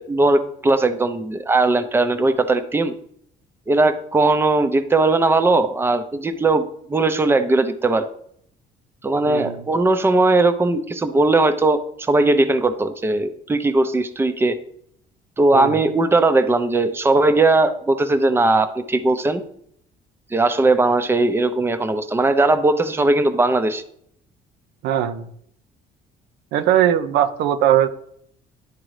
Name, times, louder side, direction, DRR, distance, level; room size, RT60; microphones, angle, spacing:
voice 1, 0.0-2.9 3.7-6.6 6.9-8.0 9.0-11.8 12.1-14.6 15.4-19.4 20.3-23.8, right 2 dB, 15° right, 9 dB, 0.6 m, -18 dB
voice 2, 9.2-9.6 15.5-15.7 24.8-25.3 26.5-27.9, right 11 dB, 85° right, 10 dB, 0.6 m, -19 dB
11.0 x 3.7 x 3.2 m, 0.68 s
cardioid pair, 110°, 17 cm